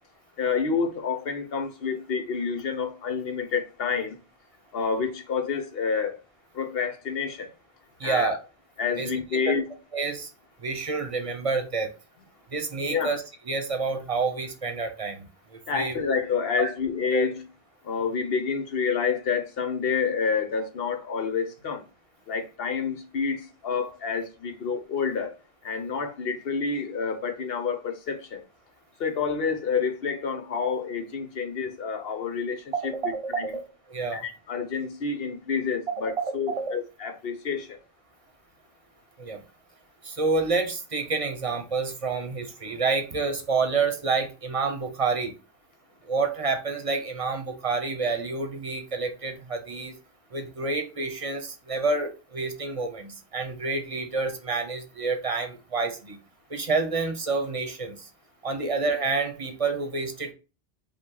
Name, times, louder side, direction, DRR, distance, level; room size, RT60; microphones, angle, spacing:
voice 1, 0.4-4.1 4.7-6.2 6.6-7.5 8.0-8.3 8.8-9.6 12.9-13.1 15.7-17.4 17.9-21.8 22.3-25.3 25.6-28.4 29.0-33.5 34.1-37.7 58.6-58.7, left 5 dB, 70° left, 1.0 m, -28 dB
voice 2, 8.0-8.4 9.0-9.1 9.5-9.6 9.9-10.3 10.6-11.9 12.5-16.1 16.6-16.7 17.1-17.3 32.7-34.2 35.9-36.7 39.2-39.4 40.0-45.3 46.0-49.9 50.3-56.2 56.5-58.1 58.4-60.3, right 4 dB, 35° right, 0.8 m, -28 dB
5.5 x 2.2 x 3.8 m
omnidirectional pair, 1.0 m